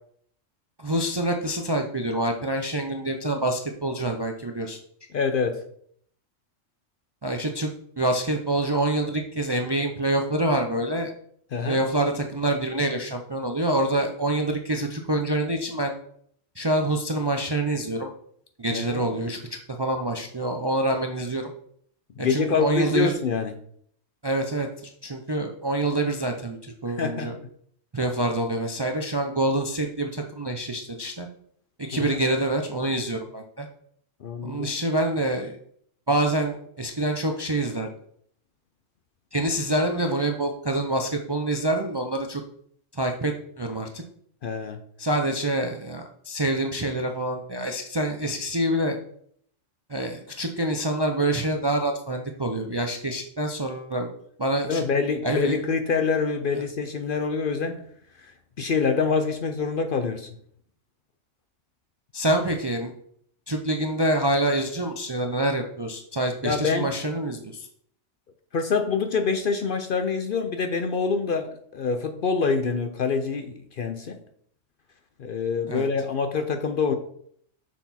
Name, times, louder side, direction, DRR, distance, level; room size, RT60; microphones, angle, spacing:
voice 1, 0.8-4.8 7.2-7.7 8.0-11.1 11.7-15.9 16.6-18.1 18.6-19.4 19.8-21.5 22.2-23.1 24.2-27.3 27.9-31.3 31.9-33.7 34.4-35.6 36.1-37.9 39.3-42.4 42.9-44.0 45.0-49.0 49.9-54.1 54.4-54.8 55.2-55.6 62.1-62.9 63.5-67.7 75.7-75.9, right 1 dB, 30° right, 0.4 m, -26 dB
voice 2, 5.1-5.6 11.5-11.8 18.7-19.1 22.2-23.5 26.9-27.4 31.9-32.2 34.2-34.7 44.4-44.8 54.7-57.8 58.6-60.3 66.4-66.9 68.5-74.2 75.2-76.9, left 5 dB, 55° left, 0.6 m, -26 dB
6.3 x 6.0 x 4.2 m
omnidirectional pair, 1.3 m